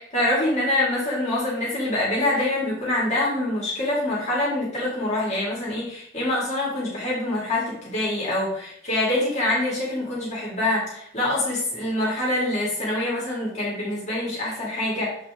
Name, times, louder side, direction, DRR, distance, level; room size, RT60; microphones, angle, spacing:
voice 1, 0.1-15.2, left 1 dB, 40° left, -6 dB, 2.4 m, -25 dB
7.1 x 4.8 x 3.7 m, 0.66 s
head